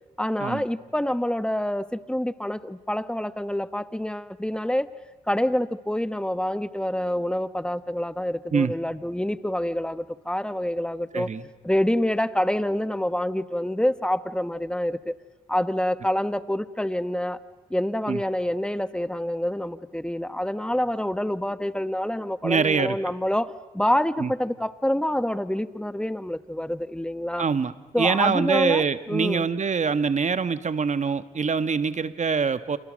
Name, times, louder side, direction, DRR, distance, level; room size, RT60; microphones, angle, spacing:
voice 1, 0.2-4.9 5.3-11.3 11.6-15.2 15.5-17.4 17.7-27.5 27.9-29.5, left 1 dB, 5° left, 13 dB, 1.3 m, -27 dB
voice 2, 22.4-23.0 24.2-24.3 27.4-32.8, right 5 dB, 50° right, 12 dB, 1.4 m, -24 dB
30.0 x 28.5 x 6.4 m, 1.2 s
cardioid pair, 60°, 16 cm